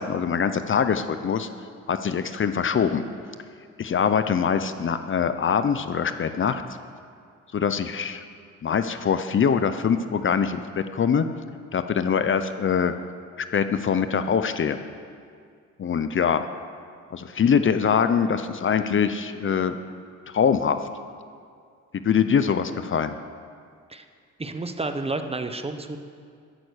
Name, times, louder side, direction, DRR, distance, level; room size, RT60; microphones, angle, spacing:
voice 1, 0.0-1.5 1.9-3.0 3.8-6.6 7.5-8.2 8.6-11.3 11.7-12.9 13.4-14.8 15.8-16.4 17.1-19.8 20.3-20.8 22.0-23.2, left 7 dB, 40° left, 10 dB, 0.8 m, -23 dB
voice 2, 24.4-26.0, right 3 dB, 20° right, 7 dB, 1.1 m, -30 dB
13.0 x 11.5 x 6.5 m, 2.2 s
cardioid pair, 90°, 30 cm